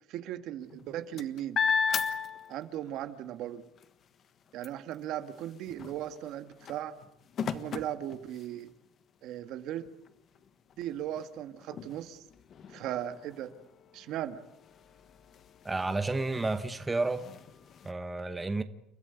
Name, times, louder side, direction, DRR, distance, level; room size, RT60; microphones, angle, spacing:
voice 1, 0.1-1.6 2.5-3.6 4.5-7.0 7.5-8.7 9.2-9.9 10.8-12.2 12.7-13.5 13.9-14.4, right 11 dB, 60° right, 1.7 m, -37 dB
sound 1, 0.6-3.0 3.4-8.9 9.5-9.6 9.9-17.9, left 6 dB, 35° left, 1.4 m, -37 dB
voice 2, 15.6-17.3 17.8-18.6, right 3 dB, 10° right, 1.0 m, -31 dB
30.0 x 13.5 x 8.2 m
cardioid pair, 145°, 0 cm